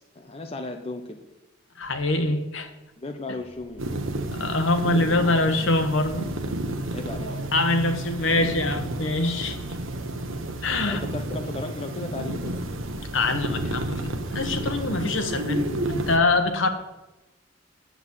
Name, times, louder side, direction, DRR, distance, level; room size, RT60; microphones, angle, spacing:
voice 1, 0.1-1.2 3.0-3.9 6.9-7.4 10.8-12.6, left 2 dB, 30° left, 5 dB, 0.7 m, -35 dB
voice 2, 1.8-2.7 4.3-6.3 7.5-9.6 10.6-11.0 13.1-16.7, left 2 dB, 65° left, 7 dB, 1.2 m, -24 dB
sound 1, 1.8-2.5 3.3-4.9 5.5-7.3 7.8-9.4 10.2-11.9 12.5-15.0 15.6-16.2, left 1 dB, 15° right, 3.1 m, -48 dB
sound 2, 3.8-16.2, right 1 dB, 70° right, 1.1 m, -31 dB
8.9 x 7.2 x 8.2 m, 1.0 s
head